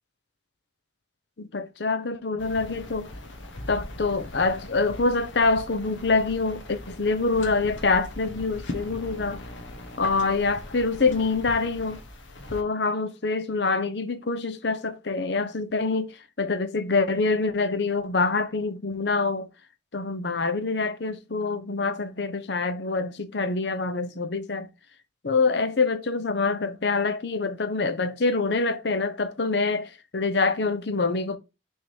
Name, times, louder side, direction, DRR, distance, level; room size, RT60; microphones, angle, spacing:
voice 1, 1.4-3.1 3.7-9.4 10.0-12.0 12.5-19.5 19.9-24.7 25.2-31.4, left 3 dB, 65° left, 0.7 m, -25 dB
sound 1, 2.4-12.6, left 1 dB, 80° left, 1.2 m, -40 dB
6.2 x 3.7 x 4.4 m
head